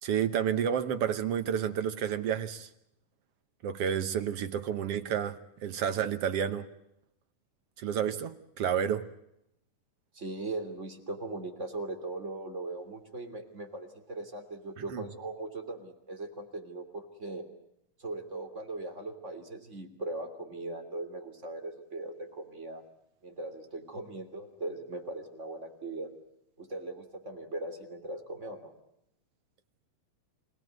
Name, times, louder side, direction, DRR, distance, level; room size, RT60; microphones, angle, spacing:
voice 1, 0.0-2.7 3.6-6.7 7.8-9.0 14.9-15.0, right 8 dB, 60° right, 1.6 m, -30 dB
voice 2, 10.1-17.4 18.0-22.8 23.2-26.1 26.6-28.7, right 2 dB, 20° right, 2.9 m, -39 dB
27.5 x 18.0 x 9.4 m
omnidirectional pair, 3.8 m